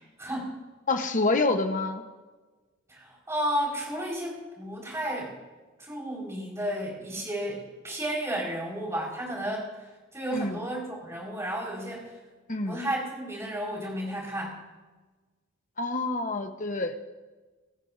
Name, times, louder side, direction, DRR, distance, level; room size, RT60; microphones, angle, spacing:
voice 1, 0.2-0.5 2.9-5.3 5.8-9.7 10.1-12.1 12.7-14.6, right 1 dB, 15° right, -3 dB, 5.4 m, -32 dB
voice 2, 0.9-2.0 10.3-10.6 12.5-12.8 15.8-17.0, left 3 dB, 40° left, 6 dB, 1.2 m, -27 dB
26.5 x 14.0 x 2.8 m, 1.3 s
head